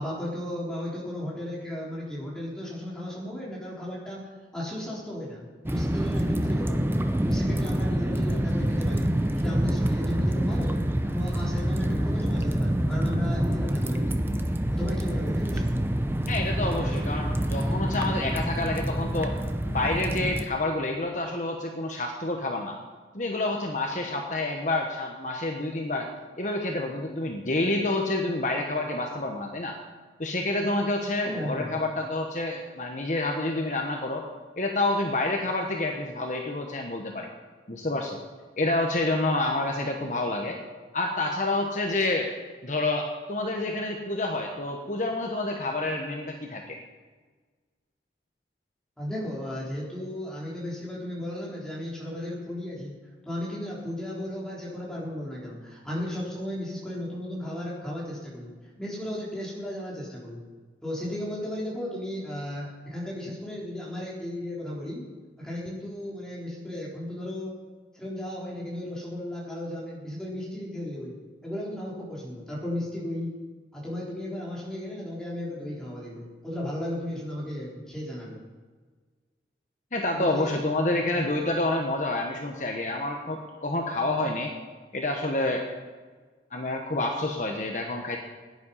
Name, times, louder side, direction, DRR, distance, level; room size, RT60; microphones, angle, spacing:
voice 1, 0.0-6.9 7.3-10.8 11.0-14.3 14.7-15.8 31.3-31.7 49.0-52.9 53.3-58.5 58.8-60.4 60.8-65.0 65.4-67.6 67.9-71.2 71.4-73.3 73.7-78.4 80.1-80.6 81.1-81.2, left 1 dB, 5° left, -6 dB, 3.9 m, -35 dB
sound 1, 5.6-20.4, right 1 dB, 15° right, 0.6 m, -26 dB
voice 2, 16.3-19.3 19.7-22.8 23.1-26.1 26.4-29.8 30.2-34.3 34.6-37.3 37.7-38.2 38.6-40.6 40.9-42.3 42.6-46.8 79.9-84.5 84.9-85.6 86.5-88.2, left 2 dB, 45° left, 2 dB, 1.2 m, -28 dB
16.0 x 10.0 x 5.6 m, 1.4 s
head